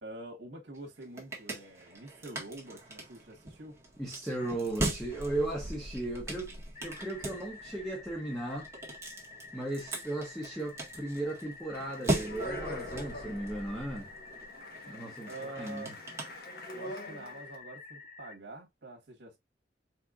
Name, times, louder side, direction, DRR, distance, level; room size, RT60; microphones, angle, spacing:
voice 1, 0.0-3.8 15.2-15.9 16.7-19.4, right 2 dB, 80° right, 1.4 m, -46 dB
sound 1, 0.7-17.0, right 2 dB, 15° right, 1.5 m, -40 dB
voice 2, 4.0-6.6 6.8-8.7 9.5-14.1 14.9-15.9, right 1 dB, ahead, 1.3 m, -36 dB
sound 2, 6.8-18.4, left 4 dB, 40° left, 0.9 m, -50 dB
Speech, 11.7-17.6, left 1 dB, 55° left, 1.3 m, -44 dB
4.6 x 4.4 x 2.4 m
head